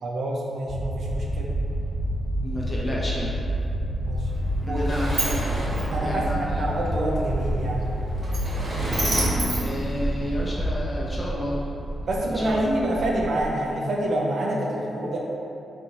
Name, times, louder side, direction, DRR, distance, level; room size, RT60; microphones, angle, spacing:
voice 1, 0.0-1.5 4.1-4.3 4.7-4.8 5.2-5.3 5.9-7.8 12.0-15.2, right 1 dB, 65° right, -2 dB, 0.5 m, -27 dB
sound 1, 0.7-9.5, equal, 5° right, 1.5 m, -29 dB
sound 2, 0.9-13.5, right 1 dB, 55° left, 0.6 m, -33 dB
voice 2, 2.4-3.3 4.6-5.4 6.0-6.6 9.6-11.7 12.2-12.6, left 1 dB, 25° left, -5 dB, 0.8 m, -31 dB
Sliding door, 4.2-10.6, right 1 dB, 45° right, 1.1 m, -31 dB
4.1 x 2.6 x 2.8 m, 2.8 s
cardioid pair, 90°, 0 cm